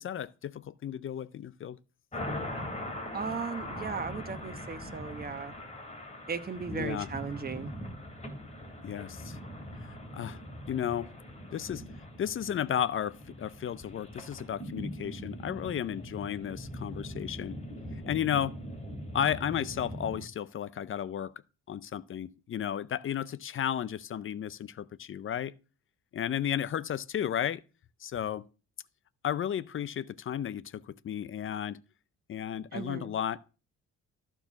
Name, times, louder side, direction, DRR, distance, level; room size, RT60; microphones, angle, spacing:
voice 1, 0.0-1.8 6.7-7.1 8.8-9.4 9.8-10.4 10.7-11.1 11.5-11.8 12.2-17.6 18.1-18.6 19.1-21.3 21.7-25.5 26.1-27.6 28.0-28.4 29.2-31.8 32.3-33.4, left 9 dB, 45° left, 0.5 m, -33 dB
sound 1, 2.1-20.2, left 1 dB, 25° left, 3.0 m, -41 dB
voice 2, 3.1-5.5 6.3-7.7 32.7-33.1, right 5 dB, 30° right, 1.1 m, -37 dB
13.0 x 4.6 x 5.8 m
cardioid pair, 90°, 30 cm